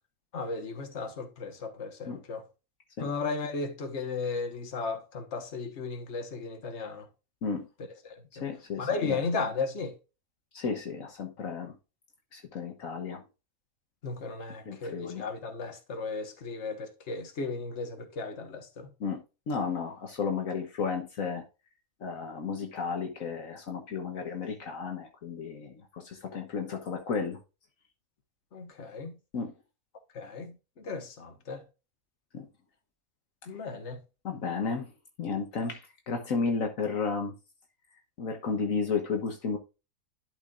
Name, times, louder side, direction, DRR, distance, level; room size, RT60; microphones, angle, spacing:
voice 1, 0.3-2.4 3.0-7.1 8.0-8.4 8.8-9.9 14.0-18.9 28.5-29.2 30.1-31.6 33.5-34.0, left 4 dB, 55° left, 1.6 m, -35 dB
voice 2, 8.4-9.2 10.5-11.7 12.3-13.2 14.6-15.2 19.0-19.2 19.5-21.4 22.0-27.4 29.3-29.5 32.3-32.4 34.2-34.9 35.2-37.3 38.2-39.6, left 5 dB, 70° left, 1.5 m, -33 dB
11.5 x 5.6 x 2.5 m
omnidirectional pair, 1.5 m